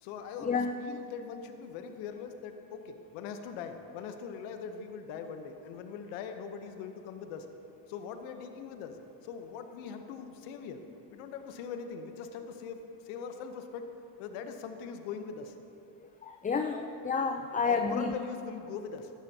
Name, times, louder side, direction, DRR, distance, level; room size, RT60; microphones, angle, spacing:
voice 1, 0.0-7.5 7.9-10.8 11.1-13.9 14.2-15.5 17.6-19.1, left 6 dB, 80° left, 7 dB, 1.0 m, -41 dB
voice 2, 16.2-18.1, left 5 dB, 15° left, 6 dB, 0.5 m, -30 dB
16.5 x 12.0 x 2.8 m, 2.7 s
supercardioid pair, 75°, 48 cm